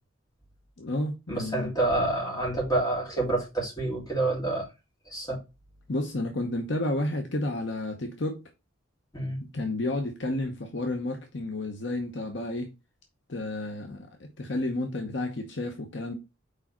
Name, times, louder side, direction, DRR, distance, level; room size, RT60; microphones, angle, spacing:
voice 1, 0.8-1.7 5.9-8.4 9.5-12.7 13.3-16.1, left 1 dB, 60° left, 0.9 m, -31 dB
voice 2, 1.3-4.7 5.1-5.4 9.1-9.4, right 2 dB, 20° left, 3.1 m, -28 dB
4.9 x 4.8 x 4.3 m
head